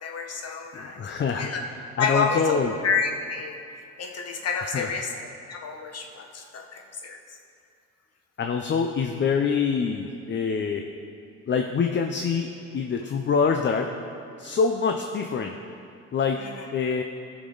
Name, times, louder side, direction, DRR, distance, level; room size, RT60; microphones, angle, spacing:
voice 1, 0.0-1.0 1.3-1.6 2.0-2.6 2.8-5.1 5.5-7.2 16.4-16.7, left 5 dB, 55° left, 3 dB, 1.1 m, -29 dB
voice 2, 0.7-1.5 2.0-2.7 4.6-4.9 8.4-10.8 11.5-13.9 14.4-15.6 16.1-16.4 16.7-17.0, left 5 dB, 40° left, 4 dB, 0.5 m, -25 dB
13.5 x 6.1 x 3.9 m, 2.6 s
cardioid pair, 90°, 30 cm